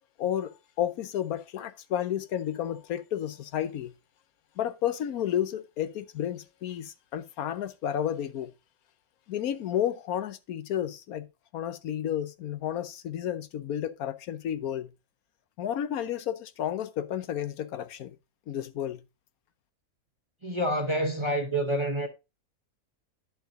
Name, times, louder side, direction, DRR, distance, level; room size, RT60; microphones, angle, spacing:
voice 1, 0.2-3.9 4.6-8.5 9.3-11.3 11.5-14.9 15.6-18.2 18.5-19.0, left 10 dB, 80° left, 1.2 m, -31 dB
voice 2, 20.4-22.1, right 1 dB, 20° right, 1.0 m, -27 dB
10.5 x 7.1 x 2.8 m
omnidirectional pair, 1.5 m